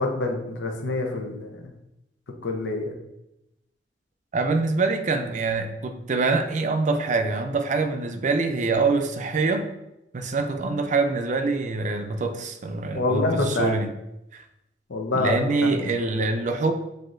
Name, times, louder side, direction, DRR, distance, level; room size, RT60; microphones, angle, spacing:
voice 1, 0.0-1.6 2.4-2.9 12.9-13.8 14.9-16.3, left 2 dB, 90° left, 3 dB, 0.7 m, -27 dB
voice 2, 4.3-9.7 10.1-13.9 14.3-14.4 15.1-16.7, right 3 dB, 45° right, 7 dB, 0.4 m, -25 dB
7.7 x 2.7 x 2.5 m, 0.89 s
head